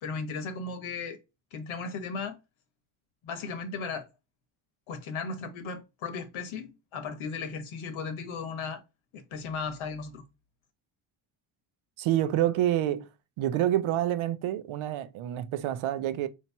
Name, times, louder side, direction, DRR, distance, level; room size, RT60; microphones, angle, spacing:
voice 1, 0.0-1.2 1.5-2.4 3.2-4.1 4.9-8.8 9.1-10.2, left 4 dB, 70° left, 1.0 m, -36 dB
voice 2, 12.0-13.1 13.4-16.3, right 12 dB, 70° right, 0.6 m, -27 dB
3.0 x 2.8 x 4.4 m
cardioid pair, 120°, 50 cm